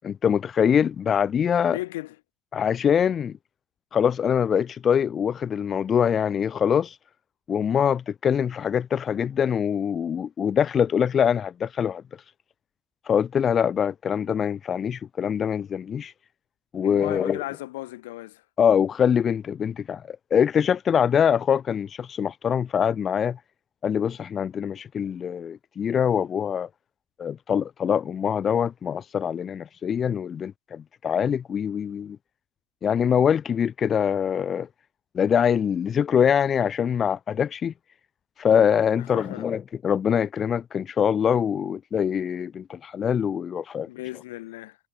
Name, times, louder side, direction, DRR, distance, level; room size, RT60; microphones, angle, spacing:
voice 1, 0.0-1.8 2.5-3.3 3.9-7.0 7.5-12.0 13.0-16.1 16.7-17.4 18.6-23.4 23.8-26.7 27.2-32.2 32.8-34.7 35.1-37.7 38.4-43.9, left 8 dB, 35° left, 1.1 m, -24 dB
voice 2, 1.7-2.2 16.8-18.4 39.1-39.5 43.9-44.8, left 18 dB, 85° left, 7.7 m, -35 dB
supercardioid pair, 105°, 0 cm